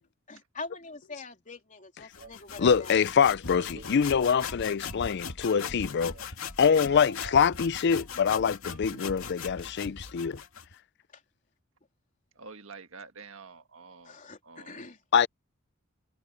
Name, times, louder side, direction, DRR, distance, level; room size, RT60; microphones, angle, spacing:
voice 1, 0.3-3.0 14.0-15.0, left 3 dB, 40° left, 3.4 m, -43 dB
sound 1, 1.8-1.9 2.2-2.3 2.7-2.8 3.5-4.9 5.2-5.3 5.6-5.7 6.1-6.2 6.8-7.5 7.9-8.0 8.5-8.6 8.9-9.0, right 2 dB, 50° right, 1.4 m, -48 dB
sound 2, 2.1-10.7, left 5 dB, 80° left, 2.4 m, -40 dB
voice 2, 2.6-6.2 6.6-10.4 15.1-15.3, left 7 dB, 55° left, 0.4 m, -24 dB
voice 3, 12.3-14.9, right 4 dB, 70° right, 1.6 m, -48 dB
head